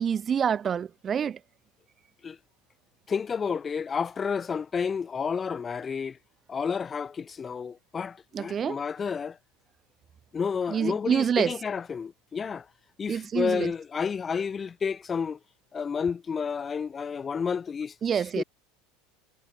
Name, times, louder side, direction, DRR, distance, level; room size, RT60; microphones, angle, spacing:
voice 1, 0.0-1.4 8.3-8.8 10.7-11.5 13.1-13.7 18.0-18.4, right 7 dB, 30° right, 0.3 m, -27 dB
voice 2, 3.1-6.2 6.5-9.4 10.3-12.7 13.0-15.4 15.7-18.4, left 6 dB, 25° left, 0.5 m, -31 dB
hypercardioid pair, 80°, 0 cm